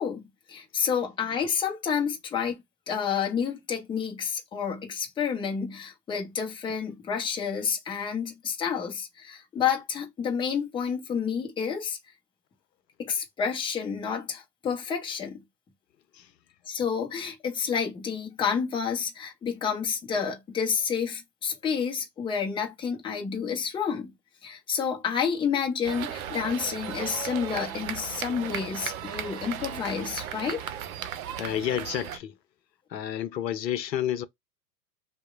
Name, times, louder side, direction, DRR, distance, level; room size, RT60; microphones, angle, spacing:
voice 1, 0.0-2.6 2.9-12.0 13.0-15.4 16.7-24.1 24.4-30.6, left 7 dB, 10° left, 0.5 m, -29 dB
sound 1, 25.8-32.2, right 9 dB, 55° right, 0.7 m, -36 dB
voice 2, 31.4-32.4 32.9-34.3, left 11 dB, 80° left, 0.7 m, -30 dB
2.8 x 2.1 x 2.3 m
hypercardioid pair, 105°, 50 cm